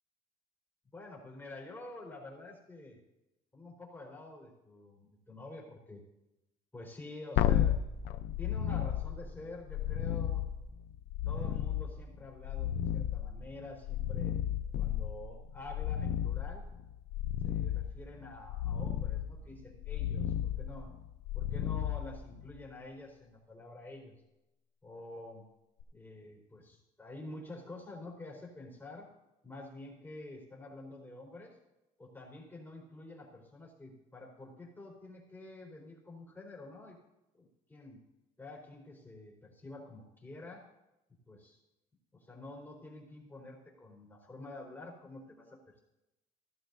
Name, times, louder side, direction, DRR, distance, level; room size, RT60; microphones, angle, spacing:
voice 1, 0.9-3.0 3.5-6.0 6.7-7.8 8.4-10.5 11.3-14.3 14.8-16.6 17.4-20.9 21.3-24.2 24.8-25.4 25.9-29.1 29.4-31.6 32.0-37.0 37.3-38.0 38.4-40.6 41.3-41.6 42.1-45.8, left 2 dB, 10° left, -2 dB, 4.1 m, -48 dB
sound 1, 7.4-22.7 25.8-25.9, left 10 dB, 90° left, 0.7 m, -34 dB
16.0 x 12.0 x 2.7 m, 0.92 s
cardioid pair, 110°, 17 cm